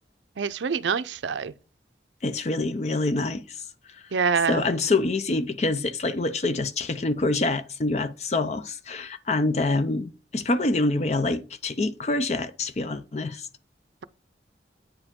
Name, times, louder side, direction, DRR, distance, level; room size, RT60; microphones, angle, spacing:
voice 1, 0.4-1.5 4.1-4.6, right 6 dB, 85° right, 0.5 m, -25 dB
voice 2, 2.2-3.6 4.5-13.5, left 2 dB, 35° left, 0.5 m, -26 dB
8.7 x 4.9 x 3.6 m
head